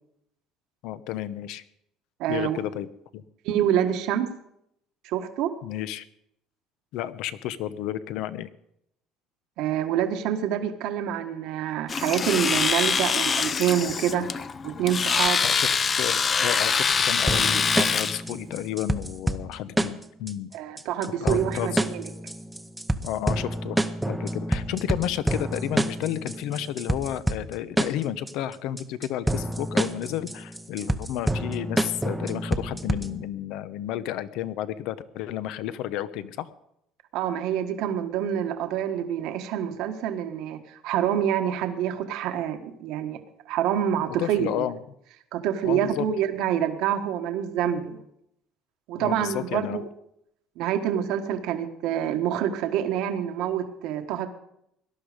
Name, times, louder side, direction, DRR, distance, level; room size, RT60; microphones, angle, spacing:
voice 1, 0.8-1.6 2.3-2.9 3.1-3.2 5.6-6.0 6.9-8.5 15.2-20.5 21.1-21.9 23.0-36.5 44.2-44.8 45.6-46.0 49.0-49.8, left 12 dB, 70° left, 14 dB, 0.9 m, -32 dB
voice 2, 2.2-2.6 3.4-4.3 5.0-5.5 9.6-14.3 14.6-15.4 20.5-22.0 37.1-43.2 43.5-44.7 45.3-48.0 48.9-49.9 50.6-54.3, right 10 dB, 70° right, 7 dB, 1.5 m, -27 dB
Domestic sounds home sounds, 11.9-18.2, left 5 dB, 25° left, 0.6 m, -24 dB
sound 1, 17.3-33.3, right 1 dB, 5° right, 0.8 m, -28 dB
18.5 x 11.5 x 5.1 m, 0.76 s
cardioid pair, 150°, 0 cm